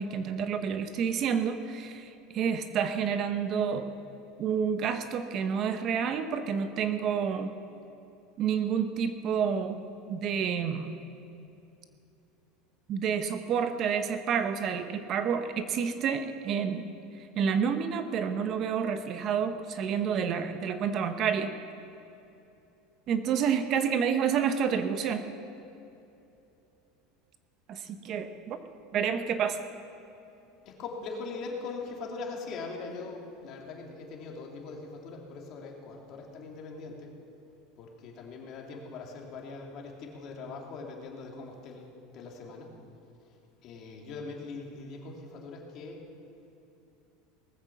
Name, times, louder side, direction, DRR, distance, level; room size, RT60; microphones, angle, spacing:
voice 1, 0.0-3.9 4.4-7.5 8.4-9.8 10.1-10.9 12.9-16.9 17.2-21.5 23.1-25.2 27.7-28.6 28.9-29.6, right 7 dB, 40° right, 9 dB, 0.8 m, -29 dB
voice 2, 30.6-37.1 37.8-42.7 43.6-46.0, left 4 dB, 45° left, 0 dB, 2.6 m, -41 dB
19.0 x 8.1 x 7.2 m, 2.8 s
supercardioid pair, 145°, 0 cm